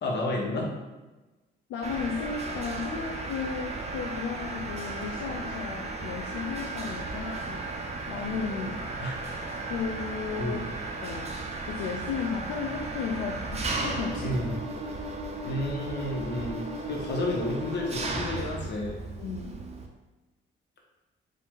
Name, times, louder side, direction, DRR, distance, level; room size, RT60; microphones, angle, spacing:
voice 1, 0.0-0.7 9.0-9.2 10.4-10.6 14.2-14.6 15.4-19.0, left 1 dB, 60° left, -1 dB, 1.2 m, -31 dB
voice 2, 1.7-7.8 8.1-8.8 9.7-10.6 11.0-11.3 11.7-14.3 15.5-15.6 19.2-19.6, left 6 dB, 85° left, 0 dB, 0.5 m, -34 dB
Mechanisms, 1.8-19.9, right 2 dB, 30° right, 0.7 m, -35 dB
5.2 x 2.7 x 3.7 m, 1.1 s
cardioid pair, 90°, 20 cm